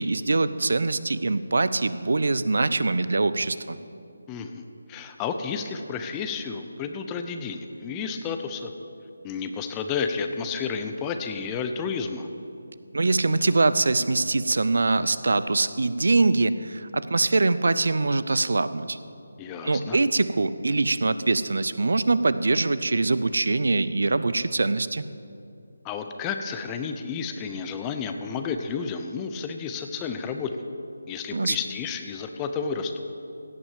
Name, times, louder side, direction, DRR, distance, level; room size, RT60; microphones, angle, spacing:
voice 1, 0.0-3.8 12.9-19.0 19.6-25.0 31.3-31.6, right 3 dB, 70° right, 14 dB, 0.5 m, -23 dB
voice 2, 4.3-4.6 4.9-8.7 9.2-12.3 19.4-20.0 25.8-30.5 31.1-32.9, left 5 dB, 15° left, 6 dB, 0.6 m, -31 dB
16.5 x 6.1 x 7.4 m, 2.6 s
figure-of-eight pair, 155°, 0 cm